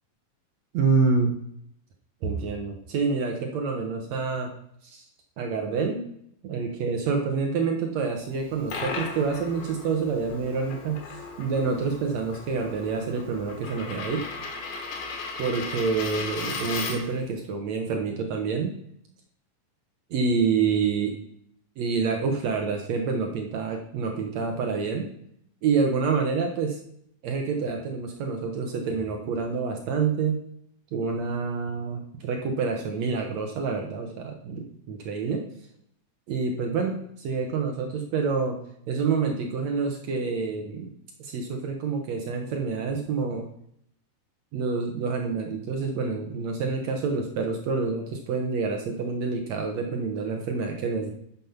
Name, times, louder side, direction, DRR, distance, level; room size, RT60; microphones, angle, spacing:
voice 1, 0.7-1.3 2.2-4.5 4.8-5.0 5.4-6.0 6.4-14.2 15.4-18.8 20.1-21.2 21.8-25.1 25.6-26.8 27.2-30.4 30.9-35.4 36.3-38.6 38.9-40.9 41.2-43.5 44.5-51.1, right 5 dB, 70° right, 3 dB, 1.7 m, -27 dB
Coin (dropping), 8.3-17.2, left 4 dB, 90° left, 3.5 m, -36 dB
9.0 x 7.2 x 5.8 m, 0.71 s
omnidirectional pair, 4.2 m